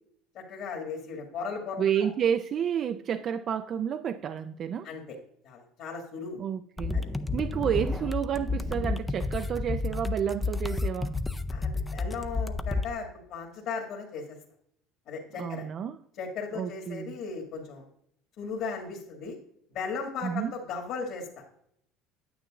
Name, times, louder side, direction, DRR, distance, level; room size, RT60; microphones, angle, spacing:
voice 1, 0.3-2.1 4.8-5.2 5.4-6.4 6.9-7.0 11.5-14.4 15.1-15.6 16.2-17.8 18.4-19.3 19.7-21.4, left 5 dB, 60° left, 2.0 m, -36 dB
voice 2, 1.8-4.9 6.4-7.0 7.3-11.2 15.4-16.0 16.5-17.2 20.2-20.5, right 8 dB, 45° right, 0.4 m, -30 dB
sound 1, 6.8-12.9, left 3 dB, 10° left, 0.5 m, -31 dB
9.3 x 8.3 x 2.5 m
supercardioid pair, 100°, 0 cm